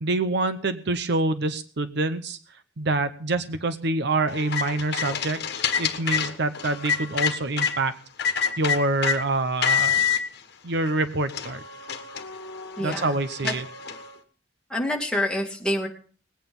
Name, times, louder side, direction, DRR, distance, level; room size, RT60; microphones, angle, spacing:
voice 1, 0.0-2.4 2.8-5.4 5.8-8.0 8.2-10.0 10.6-11.6 12.8-13.6, right 2 dB, 60° right, 12 dB, 0.8 m, -26 dB
sound 1, 4.3-7.7 8.2-9.2 9.6-10.2 10.9-11.0 11.3-14.1, left 7 dB, 60° left, 1.4 m, -27 dB
voice 2, 12.8-13.1 13.4-13.5 14.7-15.9, left 1 dB, 5° left, 0 dB, 2.4 m, -26 dB
19.5 x 9.1 x 5.3 m, 0.43 s
head